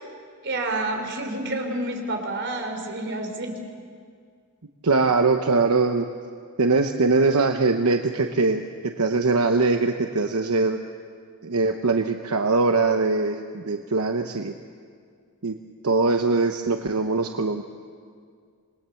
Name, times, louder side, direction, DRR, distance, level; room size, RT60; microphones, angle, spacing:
voice 1, 0.4-3.5, right 2 dB, 55° right, 3 dB, 3.4 m, -29 dB
voice 2, 4.8-6.1 6.6-10.8 11.4-14.5 15.4-15.6 15.8-17.6, right 3 dB, 80° right, 6 dB, 1.0 m, -22 dB
26.5 x 20.0 x 7.1 m, 2.1 s
head